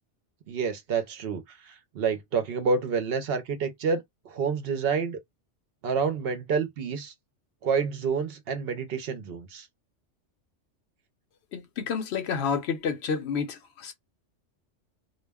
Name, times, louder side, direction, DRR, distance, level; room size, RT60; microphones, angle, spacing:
voice 1, 0.5-5.2 5.8-7.1 7.6-9.7, right 5 dB, 65° right, 0.7 m, -28 dB
voice 2, 11.5-13.9, left 6 dB, 70° left, 0.8 m, -30 dB
2.2 x 2.0 x 3.3 m
omnidirectional pair, 1.2 m